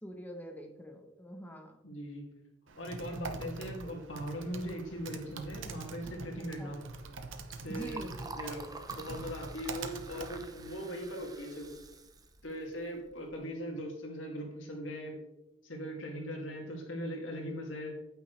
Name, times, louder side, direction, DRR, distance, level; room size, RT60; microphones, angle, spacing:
voice 1, 0.0-1.8 6.6-6.7 7.7-8.1, equal, 10° left, 3 dB, 1.0 m, -44 dB
voice 2, 1.8-2.3 2.7-6.8 7.6-8.0 8.3-8.7 8.9-11.7 12.4-15.2 15.6-18.0, equal, 90° left, 1 dB, 2.4 m, -40 dB
Typing, 2.7-10.9, right 3 dB, 85° right, 0.9 m, -44 dB
Liquid, 6.8-13.4, right 3 dB, 20° right, 0.7 m, -49 dB
9.2 x 8.6 x 3.3 m, 0.97 s
head